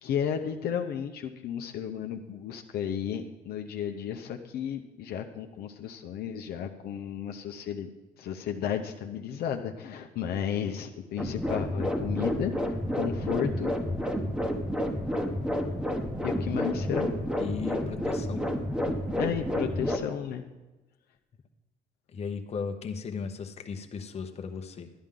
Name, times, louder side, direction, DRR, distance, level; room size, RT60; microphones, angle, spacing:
voice 1, 0.0-7.9 8.2-13.7 16.2-17.1 19.2-20.4, left 8 dB, 70° left, 5 dB, 0.8 m, -33 dB
sound 1, 11.2-20.0, equal, 5° right, 1.1 m, -30 dB
voice 2, 17.4-18.5 22.1-24.9, left 5 dB, 40° left, 6 dB, 0.9 m, -36 dB
12.5 x 10.5 x 3.8 m, 1.1 s
cardioid pair, 110°, 17 cm